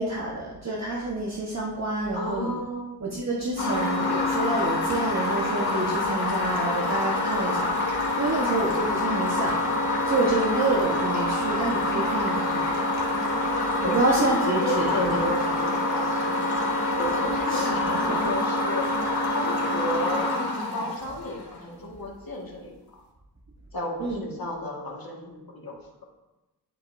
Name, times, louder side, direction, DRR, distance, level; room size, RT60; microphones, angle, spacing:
voice 1, 0.0-2.5 3.0-9.7 10.0-12.7 13.8-15.1 17.5-18.3 24.0-24.2, right 2 dB, 45° right, -4 dB, 1.3 m, -28 dB
voice 2, 2.1-2.9 11.8-12.0 13.8-18.9 19.3-20.3 20.7-22.8 23.7-26.0, left 1 dB, 65° left, -1 dB, 1.9 m, -33 dB
sound 1, 3.6-21.5, left 2 dB, 80° left, 2.0 m, -26 dB
11.5 x 5.4 x 2.7 m, 1.0 s
wide cardioid pair, 60°, 38 cm